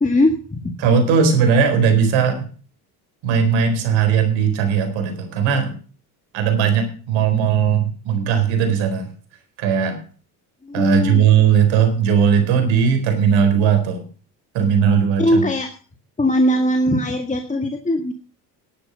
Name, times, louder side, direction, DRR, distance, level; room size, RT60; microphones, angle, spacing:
voice 1, 0.0-0.8 10.6-11.2 15.2-15.7 16.2-18.1, left 1 dB, 15° left, 4 dB, 1.9 m, -20 dB
voice 2, 0.8-2.5 3.2-5.7 6.3-9.1 9.6-10.0 10.7-14.0 14.5-15.5, right 7 dB, 70° right, 6 dB, 4.2 m, -18 dB
11.5 x 9.5 x 6.4 m, 0.40 s
hypercardioid pair, 65°, 47 cm